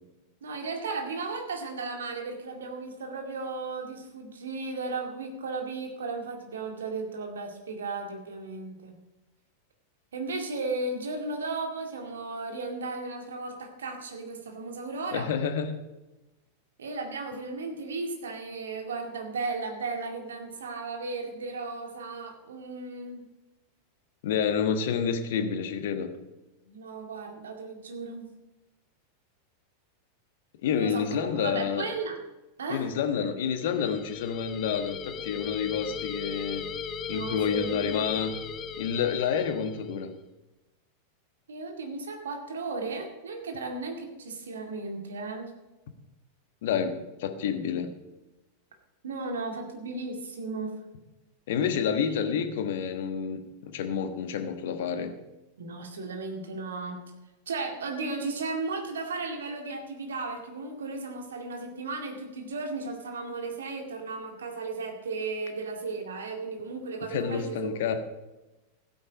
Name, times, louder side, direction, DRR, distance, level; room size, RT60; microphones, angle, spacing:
voice 1, 0.4-8.9 10.1-15.4 16.8-23.2 26.6-28.3 30.7-32.2 32.6-32.9 37.1-38.2 41.5-45.5 49.0-50.7 52.0-52.3 55.6-57.0 57.5-67.7, right 3 dB, 65° right, 3 dB, 2.2 m, -35 dB
voice 2, 15.1-15.7 24.2-26.1 30.6-31.8 32.7-36.7 37.1-38.4 38.8-40.1 46.6-47.9 51.5-55.1 67.1-67.9, left 7 dB, 55° left, 8 dB, 1.3 m, -29 dB
sound 1, 33.6-40.0, left 6 dB, 30° left, 0.9 m, -38 dB
15.0 x 8.6 x 5.0 m, 1.0 s
figure-of-eight pair, 90°, 0 cm